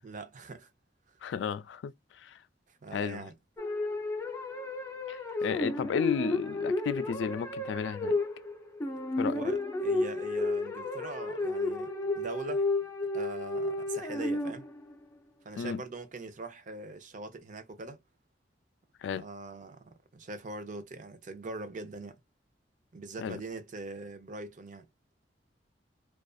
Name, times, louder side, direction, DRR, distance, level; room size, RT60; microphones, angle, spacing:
voice 1, 0.0-0.7 2.7-3.3 9.3-12.7 13.1-14.6 15.4-18.0 19.1-22.2 22.9-24.8, right 2 dB, 45° right, 0.6 m, -42 dB
voice 2, 1.2-2.4 2.9-3.2 5.1-8.1 9.2-9.4 15.6-15.8 19.0-19.2 23.2-23.4, left 6 dB, 85° left, 0.3 m, -33 dB
sound 1, 3.6-14.9, left 2 dB, 15° left, 0.5 m, -32 dB
2.5 x 2.3 x 2.3 m
head